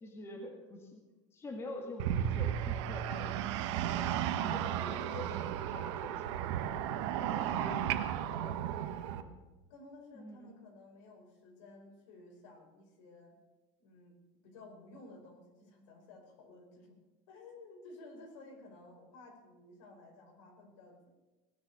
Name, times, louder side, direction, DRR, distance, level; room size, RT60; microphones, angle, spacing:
voice 1, 0.0-1.0 1.3-6.6 7.1-7.9 9.1-9.4 10.1-10.5, left 2 dB, 15° left, 2 dB, 1.8 m, -46 dB
sound 1, 2.0-9.2, right 10 dB, 60° right, 1.3 m, -34 dB
voice 2, 7.2-8.8 9.7-13.4 13.8-14.2 14.4-17.0 17.3-21.1, left 2 dB, 70° left, 2 dB, 5.2 m, -54 dB
18.0 x 11.0 x 6.8 m, 1.2 s
supercardioid pair, 170°, 16 cm